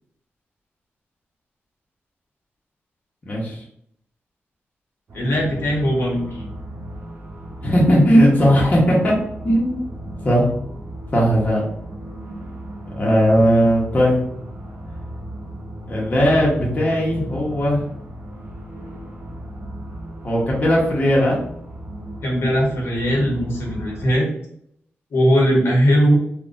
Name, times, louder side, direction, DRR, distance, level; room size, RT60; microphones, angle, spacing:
voice 1, 3.3-3.6 7.6-9.1 9.4-9.8 10.2-10.5 11.1-11.6 13.0-14.2 15.9-17.8 20.2-21.4, equal, 35° left, -4 dB, 1.0 m, -17 dB
voice 2, 5.1-6.2 13.4-13.6 22.2-24.3 25.1-26.2, equal, 70° left, -2 dB, 1.1 m, -19 dB
sound 1, 5.1-24.2, right 1 dB, 50° right, 0.8 m, -35 dB
3.9 x 2.4 x 2.5 m, 0.67 s
wide cardioid pair, 130°, 4 cm